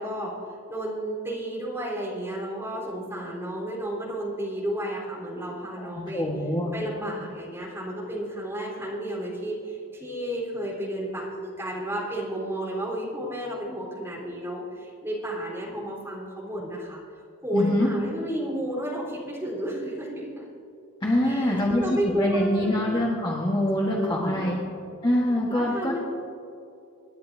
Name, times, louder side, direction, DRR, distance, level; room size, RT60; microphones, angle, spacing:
voice 1, 0.0-6.3 6.7-17.0 17.4-20.5 21.2-22.8 23.7-24.6 25.5-26.0, right 1 dB, 10° right, -5 dB, 3.8 m, -32 dB
voice 2, 6.1-6.7 17.5-17.9 21.0-21.8 22.2-24.6 25.0-26.0, left 1 dB, 20° left, -3 dB, 1.4 m, -24 dB
27.0 x 10.5 x 2.7 m, 2.5 s
head